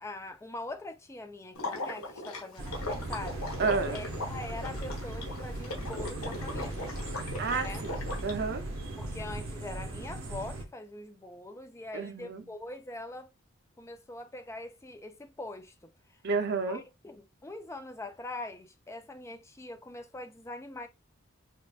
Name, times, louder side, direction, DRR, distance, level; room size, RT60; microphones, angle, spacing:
voice 1, 0.0-3.4 3.9-7.0 7.6-7.8 9.0-13.3 13.8-16.2 16.7-20.9, left 2 dB, 15° left, 0.4 m, -43 dB
Water / Liquid, 1.5-8.3, left 2 dB, 80° left, 1.2 m, -39 dB
sound 1, 2.6-10.6, right 1 dB, 75° right, 1.0 m, -38 dB
voice 2, 3.6-4.0 7.4-8.6 11.9-12.4 16.2-16.8, right 4 dB, 50° right, 0.6 m, -30 dB
5.1 x 2.5 x 2.4 m
head